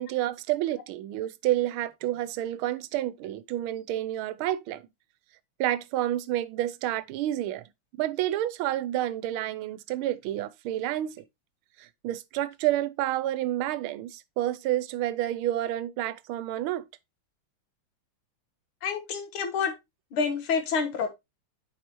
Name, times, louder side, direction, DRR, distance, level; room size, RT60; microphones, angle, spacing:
voice 1, 0.0-4.8 5.6-7.6 8.0-11.2 11.8-16.8, right 13 dB, 80° right, 1.4 m, -29 dB
voice 2, 18.8-19.7 20.1-21.1, left 5 dB, 75° left, 2.0 m, -28 dB
8.5 x 4.8 x 3.0 m
omnidirectional pair, 2.4 m